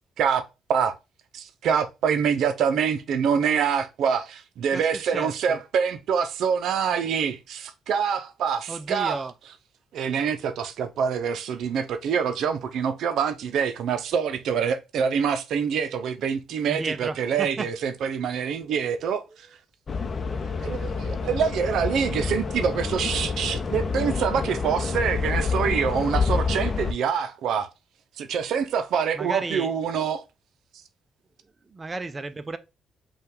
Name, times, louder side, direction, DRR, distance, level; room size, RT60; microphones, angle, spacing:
voice 1, 1.3-9.2 9.9-19.5 20.6-27.7 28.2-30.2, right 7 dB, 75° right, 0.5 m, -25 dB
voice 2, 4.7-5.6 8.7-9.3 16.7-17.7 19.2-19.3 29.1-29.7 31.7-32.6, right 3 dB, 30° right, 0.4 m, -33 dB
sound 1, 19.9-26.9, left 4 dB, 35° left, 0.6 m, -28 dB
5.5 x 2.4 x 3.6 m
cardioid pair, 90°, 0 cm